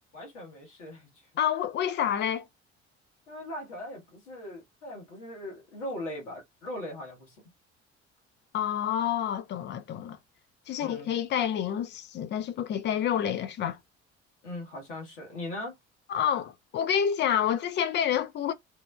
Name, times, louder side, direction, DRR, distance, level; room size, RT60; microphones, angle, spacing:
voice 1, 0.1-1.1 3.3-7.3 10.8-11.1 14.4-15.7, left 1 dB, 75° left, 1.2 m, -39 dB
voice 2, 1.4-2.4 8.5-10.2 10.7-13.8 16.1-18.5, left 9 dB, 30° left, 0.4 m, -28 dB
3.1 x 2.2 x 2.2 m
figure-of-eight pair, 50°, 36 cm